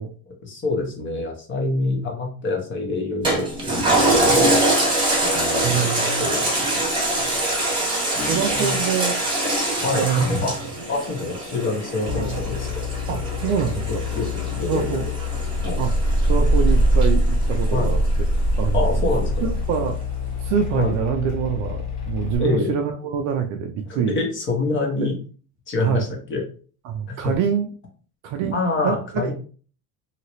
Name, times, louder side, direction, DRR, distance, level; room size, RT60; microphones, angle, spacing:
voice 1, 0.3-3.5 4.0-4.8 5.1-5.9 6.2-7.4 8.1-8.8 9.8-10.1 10.4-10.5 10.9-12.8 13.9-14.9 15.6-15.8 17.7-17.9 18.7-19.5 20.8-20.9 22.4-22.7 23.9-25.2 25.7-26.4 27.1-27.3 28.5-29.3, left 3 dB, 25° left, 1 dB, 0.9 m, -26 dB
Toilet flush, 3.2-18.1 18.5-18.6, right 1 dB, 10° right, 1.0 m, -24 dB
voice 2, 5.6-6.3 8.3-9.2 9.9-10.3 12.1-12.4 13.1-14.0 14.7-15.1 15.8-15.9 16.3-18.0 18.6-19.0 19.4-20.0 20.4-24.2 25.0-25.1 25.8-26.1 26.8-27.7 28.2-29.3, right 7 dB, 45° right, 4 dB, 0.4 m, -25 dB
sound 1, 12.1-22.4, left 1 dB, 45° left, 1.2 m, -23 dB
2.9 x 2.8 x 3.0 m, 0.39 s
cardioid pair, 150°, 42 cm